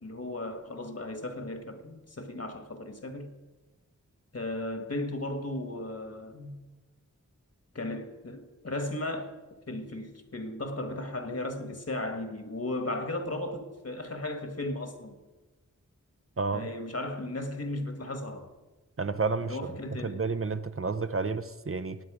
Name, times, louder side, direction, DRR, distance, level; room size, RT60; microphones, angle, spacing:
voice 1, 0.0-3.3 4.3-6.6 7.7-9.3 9.7-15.2 16.5-18.5 19.4-20.2, left 1 dB, 50° left, 1.5 m, -35 dB
voice 2, 16.4-16.7 19.0-19.6 20.0-22.0, right 4 dB, 45° right, 0.6 m, -30 dB
18.5 x 8.5 x 5.0 m
wide cardioid pair, 55°, 31 cm